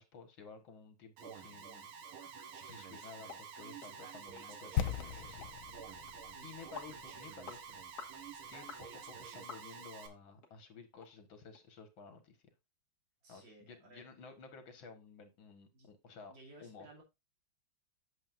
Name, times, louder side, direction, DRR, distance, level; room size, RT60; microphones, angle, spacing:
voice 1, 0.0-1.9 2.6-5.5 6.4-12.4 13.3-16.3 16.6-16.9, left 4 dB, 75° left, 2.3 m, -54 dB
Alarm, 1.2-10.1, right 6 dB, 85° right, 2.1 m, -49 dB
sound 1, 3.3-3.4 3.8-3.9 4.4-4.5 4.7-4.9 5.4-5.5 6.1-6.2 6.8-6.9 7.4-7.6 8.0-8.2 8.7-8.8 9.5-9.9 10.4-10.5 11.0-11.1 11.5-11.6, left 5 dB, 55° left, 1.9 m, -49 dB
sound 2, 4.8-8.7 9.0-9.1, left 9 dB, 90° left, 1.5 m, -40 dB
voice 2, 6.1-6.5 13.2-14.1 15.7-15.9 16.3-17.0, right 1 dB, 65° right, 3.5 m, -58 dB
8.4 x 7.5 x 2.6 m
omnidirectional pair, 2.2 m